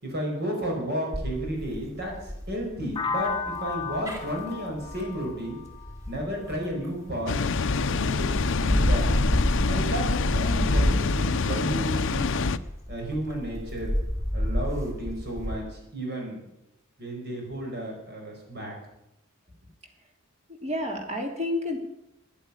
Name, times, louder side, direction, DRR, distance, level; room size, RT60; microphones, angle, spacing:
voice 1, 0.0-5.6 6.1-7.4 7.9-9.2 9.7-12.3 12.9-13.9 14.3-16.4 17.0-18.7, equal, 50° right, 0 dB, 5.4 m, -32 dB
sound 1, 1.1-7.1 7.6-15.6, equal, 15° right, 2.7 m, -30 dB
sound 2, 3.0-6.8, left 5 dB, 25° left, 0.9 m, -34 dB
Water, 7.3-12.6, left 4 dB, 65° left, 0.6 m, -26 dB
voice 2, 20.5-21.8, left 1 dB, 30° right, 2 dB, 3.1 m, -30 dB
11.5 x 10.5 x 10.0 m, 0.86 s
head